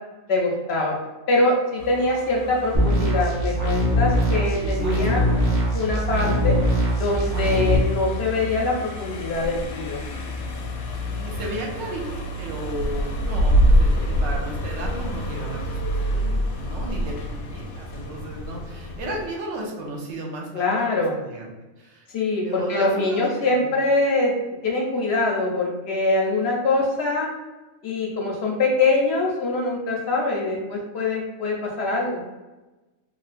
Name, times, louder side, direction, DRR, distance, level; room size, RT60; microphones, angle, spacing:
voice 1, 0.3-1.0 1.3-5.2 5.7-6.5 7.0-10.0 20.5-21.2 22.1-24.3 24.6-27.3 27.8-32.2, left 2 dB, 60° left, -1 dB, 0.7 m, -23 dB
Car passing by, 1.8-19.3, equal, 90° left, 1.0 m, -27 dB
sound 1, 2.7-7.7, equal, 50° right, 0.5 m, -22 dB
voice 2, 4.6-5.6 11.1-21.5 21.8-22.1 22.4-23.7, equal, 70° right, -1 dB, 1.0 m, -34 dB
3.0 x 2.4 x 2.4 m, 1.1 s
omnidirectional pair, 1.5 m